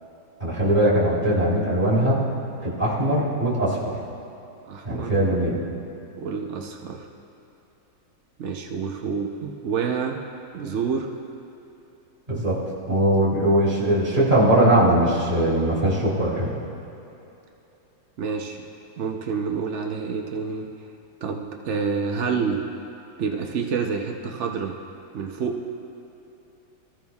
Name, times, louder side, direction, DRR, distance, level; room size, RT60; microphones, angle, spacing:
voice 1, 0.4-2.2 2.6-3.9 4.8-5.6 12.3-12.6 12.9-16.5, right 1 dB, 20° right, -7 dB, 3.3 m, -20 dB
voice 2, 4.7-5.1 6.2-7.1 8.4-10.2 10.5-11.1 18.2-18.6 19.0-20.7 21.2-22.6 23.2-24.8 25.1-25.6, right 5 dB, 80° right, 2 dB, 0.6 m, -28 dB
23.0 x 14.0 x 2.4 m, 2.9 s
omnidirectional pair, 2.3 m